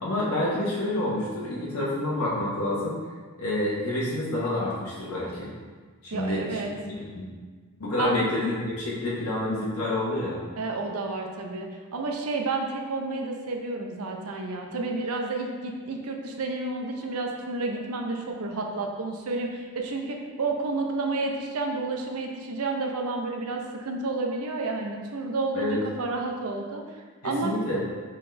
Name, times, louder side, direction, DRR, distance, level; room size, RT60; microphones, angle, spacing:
voice 1, 0.0-2.9 3.4-5.5 6.0-7.3 7.8-10.4 25.5-25.8 27.2-27.8, left 1 dB, 80° left, -7 dB, 0.9 m, -28 dB
voice 2, 6.1-6.7 8.0-8.2 10.6-26.8 27.2-27.5, right 3 dB, 80° right, 2 dB, 0.6 m, -30 dB
4.1 x 3.9 x 3.2 m, 1.5 s
head